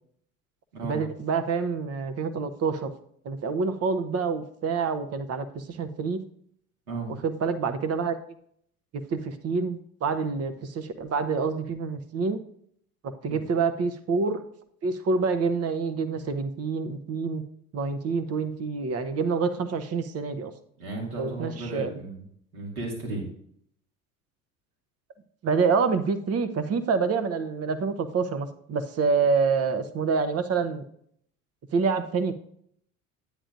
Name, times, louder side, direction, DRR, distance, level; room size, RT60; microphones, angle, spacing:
voice 1, 0.8-2.9 3.2-6.2 7.2-8.2 8.9-12.4 13.0-14.4 14.8-17.4 17.7-20.5 21.2-21.9 25.4-30.8 31.7-32.3, right 5 dB, 35° right, 11 dB, 1.0 m, -27 dB
voice 2, 20.8-22.2 22.5-23.3, right 2 dB, 80° right, -2 dB, 2.5 m, -34 dB
10.0 x 9.0 x 2.6 m, 0.65 s
figure-of-eight pair, 60°, 42 cm